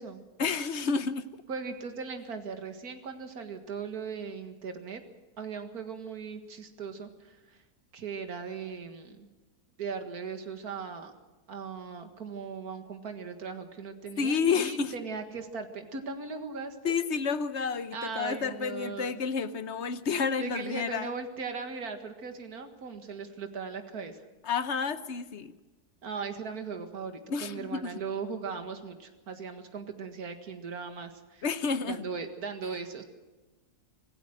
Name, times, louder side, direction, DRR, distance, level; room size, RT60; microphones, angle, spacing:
voice 1, 0.4-1.3 14.2-14.9 16.8-21.1 24.4-25.6 27.3-28.0 31.4-32.0, left 5 dB, 50° left, 12 dB, 1.1 m, -30 dB
voice 2, 1.5-5.0 5.4-7.6 7.9-9.3 9.8-11.1 11.5-16.9 17.9-19.2 20.4-24.2 26.0-31.4 31.9-33.0, right 5 dB, 70° right, 6 dB, 2.3 m, -38 dB
26.0 x 16.5 x 6.4 m, 1.2 s
omnidirectional pair, 1.7 m